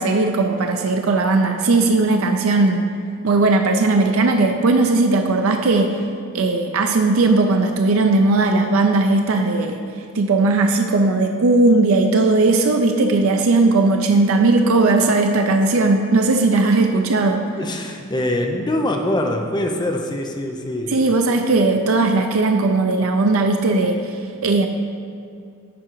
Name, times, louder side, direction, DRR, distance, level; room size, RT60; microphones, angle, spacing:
voice 1, 0.0-2.9 3.2-6.0 6.3-9.8 10.1-17.4 20.9-24.7, right 3 dB, 80° right, 4 dB, 0.5 m, -17 dB
voice 2, 17.6-21.0, left 1 dB, 20° left, 3 dB, 0.6 m, -23 dB
10.5 x 3.8 x 4.5 m, 2.4 s
head